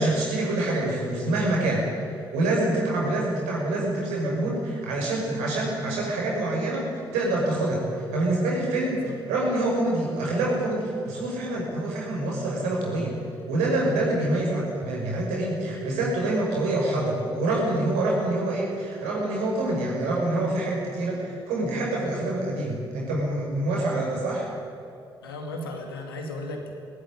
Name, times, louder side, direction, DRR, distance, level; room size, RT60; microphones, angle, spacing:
voice 1, 0.0-1.9 2.3-13.2 13.5-24.5, right 2 dB, 75° right, -2 dB, 6.3 m, -26 dB
voice 2, 14.1-14.7 25.2-26.7, left 2 dB, 85° left, 3 dB, 2.4 m, -36 dB
18.5 x 17.0 x 10.0 m, 2.5 s
figure-of-eight pair, 40°, 12 cm